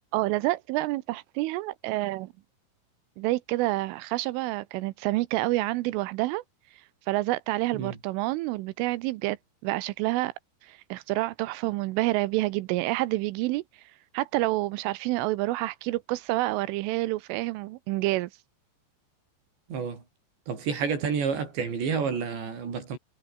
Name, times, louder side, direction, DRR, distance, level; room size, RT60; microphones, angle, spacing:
voice 1, 0.1-2.3 3.2-6.4 7.1-9.4 9.6-10.3 10.6-13.6 14.1-18.3, right 19 dB, 85° right, 3.3 m, -28 dB
voice 2, 19.7-20.0 20.5-23.0, right 6 dB, 60° right, 7.3 m, -29 dB
omnidirectional pair, 5.7 m